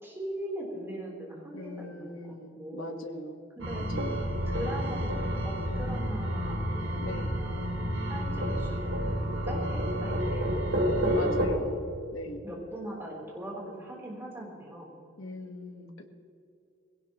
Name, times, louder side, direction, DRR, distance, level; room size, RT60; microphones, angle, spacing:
voice 1, 0.0-3.1 3.6-3.9 4.4-7.7 8.0-10.6 11.2-11.6 12.4-15.0, right 1 dB, 10° right, -4 dB, 3.6 m, -40 dB
voice 2, 1.5-3.4 3.7-4.2 4.6-4.8 7.0-7.4 8.1-8.8 11.1-11.8 12.1-12.4 15.2-16.1, left 1 dB, 80° left, 4 dB, 1.4 m, -41 dB
sound 1, 3.6-11.5, equal, 90° right, 3.2 m, -30 dB
20.5 x 17.0 x 3.1 m, 2.6 s
head